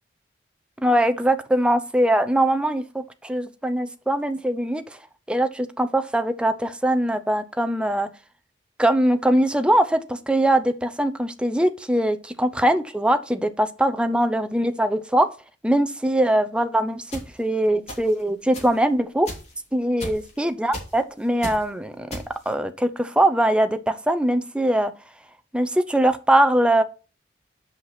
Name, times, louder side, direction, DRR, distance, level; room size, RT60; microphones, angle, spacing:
voice 1, 0.8-4.8 5.3-8.1 8.8-15.3 15.6-19.3 19.7-24.9 25.5-26.8, right 1 dB, 5° right, 9 dB, 0.6 m, -22 dB
sound 1, 17.1-17.2 17.9-18.2 18.5-18.7 19.3-19.6 20.0-20.4 20.7-21.0 21.4-21.6 22.1-22.5, equal, 35° left, 3.2 m, -34 dB
7.6 x 5.6 x 5.9 m, 0.35 s
head